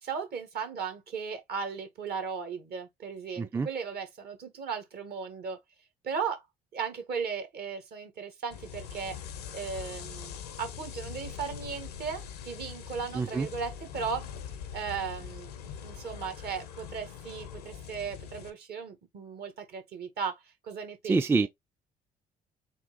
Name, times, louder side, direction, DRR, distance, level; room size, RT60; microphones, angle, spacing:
voice 1, 0.0-5.6 6.0-6.4 6.7-9.2 9.5-14.3 14.7-15.5 15.8-21.5, right 6 dB, 55° right, 1.3 m, -36 dB
voice 2, 3.4-3.7 13.2-13.5 21.1-21.5, right 4 dB, 10° right, 0.4 m, -26 dB
sound 1, 8.5-18.5, left 8 dB, 80° left, 0.6 m, -42 dB
3.6 x 2.4 x 3.8 m
hypercardioid pair, 50°, 20 cm